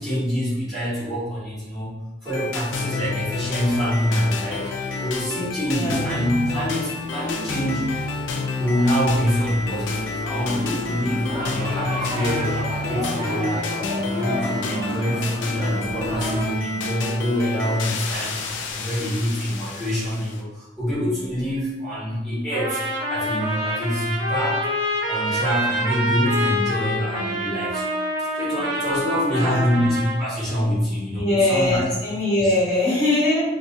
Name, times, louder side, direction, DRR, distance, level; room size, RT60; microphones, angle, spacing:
voice 1, 0.0-1.9 2.2-4.7 5.0-8.0 8.6-18.4 18.7-22.8 23.1-24.6 25.1-27.8 28.2-31.8 32.4-32.5, equal, ahead, -13 dB, 1.5 m, -25 dB
sound 1, 2.3-20.4, left 3 dB, 80° left, 0.4 m, -29 dB
voice 2, 5.7-6.2 29.3-29.8 31.1-33.4, left 2 dB, 35° left, -8 dB, 1.4 m, -22 dB
sound 2, 11.3-16.4, equal, 30° right, 0.5 m, -31 dB
Trumpet, 22.5-30.2, equal, 70° right, 0.9 m, -26 dB
4.6 x 2.7 x 2.5 m, 1.1 s
head